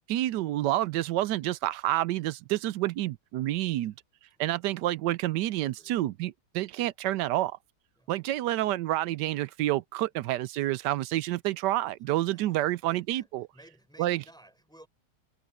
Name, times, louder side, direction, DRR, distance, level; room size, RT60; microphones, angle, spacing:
voice 1, 0.1-3.9 4.4-7.6 8.1-13.5 14.0-14.2, right 15 dB, 80° right, 1.2 m, -29 dB
voice 2, 5.5-6.0 7.9-8.1 12.0-14.9, right 1 dB, ahead, 4.6 m, -57 dB
omnidirectional pair, 1.9 m